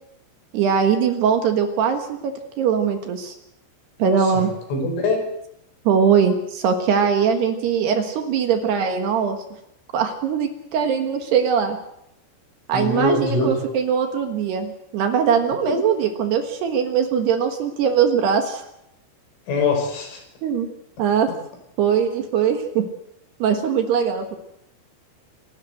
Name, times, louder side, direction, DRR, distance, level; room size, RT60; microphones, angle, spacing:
voice 1, 0.5-3.4 4.0-4.5 5.8-9.4 9.9-11.8 12.7-18.6 20.4-20.7 21.0-21.3 21.8-22.9 23.4-24.4, right 7 dB, 65° right, 5 dB, 3.2 m, -21 dB
voice 2, 4.0-4.4 4.7-5.2 12.7-13.6 15.7-15.8 19.5-20.2, left 3 dB, 70° left, 4 dB, 7.3 m, -23 dB
27.5 x 12.5 x 7.9 m, 0.80 s
omnidirectional pair, 5.7 m